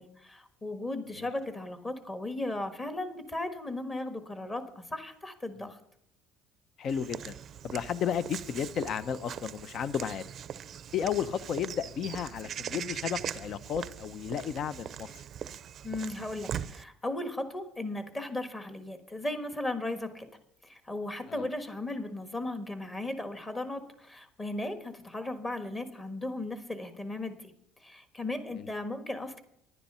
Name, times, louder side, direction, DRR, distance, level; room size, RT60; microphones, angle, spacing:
voice 1, 0.0-5.8 15.8-20.3 20.6-27.5 27.8-29.4, left 2 dB, 20° left, 8 dB, 1.5 m, -36 dB
voice 2, 6.8-7.3 7.6-10.3 10.9-15.1 21.3-21.5 28.6-28.7, left 8 dB, 45° left, 15 dB, 0.7 m, -33 dB
Walk footsteps / Bird vocalization bird call bird song, 6.9-16.8, right 9 dB, 40° right, 0.5 m, -41 dB
10.5 x 10.0 x 5.6 m, 0.75 s
cardioid pair, 130°, 0 cm